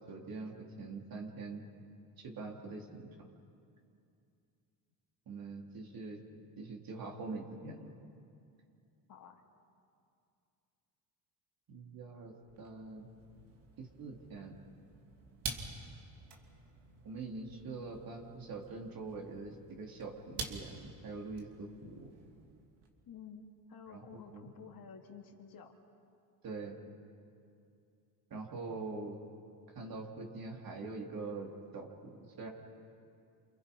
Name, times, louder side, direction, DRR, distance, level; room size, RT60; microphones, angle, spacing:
voice 1, 0.0-1.6 2.2-3.1 5.3-6.2 6.6-7.9 11.7-13.1 13.8-14.5 17.0-22.1 23.9-24.5 26.4-26.8 28.3-29.2 29.8-32.1 32.4-32.5, right 3 dB, 55° right, 0 dB, 3.8 m, -44 dB
voice 2, 9.1-9.4 23.1-25.7, left 6 dB, 55° left, 2 dB, 2.8 m, -52 dB
sound 1, 12.4-22.9, right 4 dB, 75° right, 2.8 m, -48 dB
29.5 x 28.0 x 5.6 m, 2.5 s
cardioid pair, 95°, 41 cm